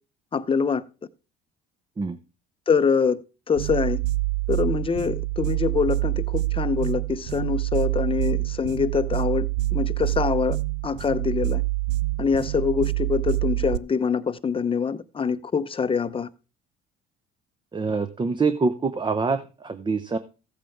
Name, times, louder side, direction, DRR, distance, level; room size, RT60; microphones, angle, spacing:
voice 1, 0.3-0.8 2.7-3.2 3.5-4.0 4.5-10.6 10.8-11.6 12.2-16.3, left 6 dB, 25° left, 0.8 m, -24 dB
sound 1, 3.6-13.8, right 19 dB, 85° right, 0.5 m, -26 dB
voice 2, 17.7-20.2, right 4 dB, 25° right, 0.8 m, -25 dB
14.5 x 8.3 x 3.6 m
supercardioid pair, 90°, 20 cm